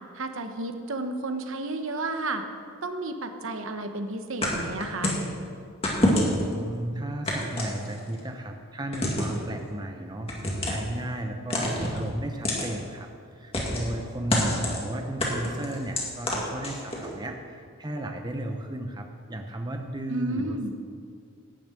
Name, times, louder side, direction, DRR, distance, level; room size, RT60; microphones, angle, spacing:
voice 1, 0.1-2.4 2.8-5.2 20.1-20.7, right 2 dB, 65° right, 7 dB, 1.0 m, -32 dB
sound 1, 4.4-5.3 5.8-6.5 7.3-8.2 8.9-9.4 10.3-10.9 11.5-12.0 12.4-12.7 13.5-13.9 14.3-14.8 15.2-17.1, left 1 dB, 25° left, 2.1 m, -27 dB
voice 2, 6.2-20.7, right 1 dB, 20° right, 4 dB, 0.7 m, -34 dB
12.0 x 7.2 x 9.0 m, 2.3 s
head